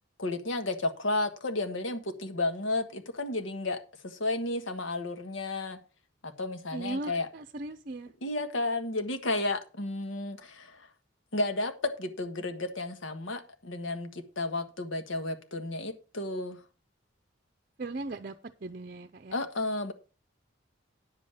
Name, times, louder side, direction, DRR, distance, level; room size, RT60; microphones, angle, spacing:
voice 1, 0.2-5.8 6.2-7.3 8.2-10.9 11.3-16.6 19.3-19.9, left 2 dB, 85° left, 1.5 m, -32 dB
voice 2, 6.7-8.1 17.8-18.4 18.6-19.4, right 2 dB, 45° right, 0.6 m, -38 dB
9.7 x 7.8 x 5.0 m
head